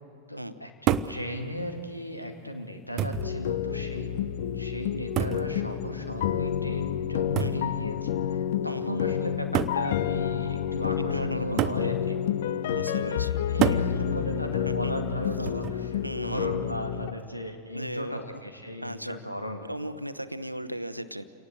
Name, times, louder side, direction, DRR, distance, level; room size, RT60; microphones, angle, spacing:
voice 1, 0.3-4.1 4.5-12.2 13.5-19.6, equal, 85° left, 5 dB, 2.2 m, -36 dB
sound 1, 0.9-1.2 2.2-2.3 3.0-3.3 5.2-5.5 7.4-7.6 8.7-8.8 9.5-9.8 11.6-11.9 13.6-13.9 15.5-15.8, right 10 dB, 35° right, 0.8 m, -27 dB
sound 2, 3.1-17.1, left 9 dB, 55° left, 0.7 m, -29 dB
voice 2, 11.0-11.9 12.7-13.4 14.6-14.9 16.0-17.0 17.7-18.4 18.8-19.2 19.6-21.2, right 1 dB, 90° right, 11 dB, 0.9 m, -37 dB
29.0 x 18.5 x 7.8 m, 2.3 s
figure-of-eight pair, 90°, 0 cm